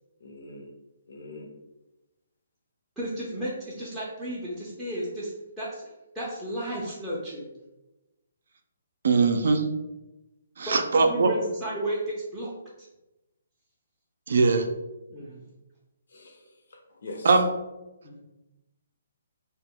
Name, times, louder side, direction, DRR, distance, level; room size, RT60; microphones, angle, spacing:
voice 1, 0.2-0.7 1.1-1.5 16.1-17.4, left 2 dB, 70° left, 1 dB, 0.7 m, -43 dB
voice 2, 3.0-7.5 10.7-12.5 12.8-12.9 15.1-15.4 18.0-18.2, right 1 dB, 5° right, -11 dB, 0.5 m, -33 dB
voice 3, 9.0-9.6 10.6-11.3 14.3-14.6 17.2-17.5, right 4 dB, 65° right, 5 dB, 0.4 m, -21 dB
2.1 x 2.1 x 3.5 m, 1.0 s
hypercardioid pair, 155°, 0 cm